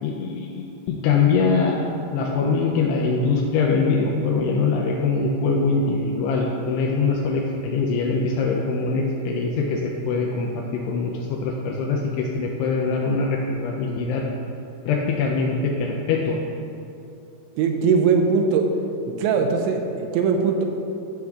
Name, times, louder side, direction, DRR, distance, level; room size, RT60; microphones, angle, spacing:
voice 1, 0.0-14.2 14.9-16.4, left 4 dB, 85° left, 0 dB, 2.4 m, -23 dB
voice 2, 17.6-18.7 19.1-20.6, right 5 dB, 90° right, 3 dB, 3.0 m, -20 dB
14.0 x 6.3 x 2.3 m, 2.7 s
omnidirectional pair, 5.2 m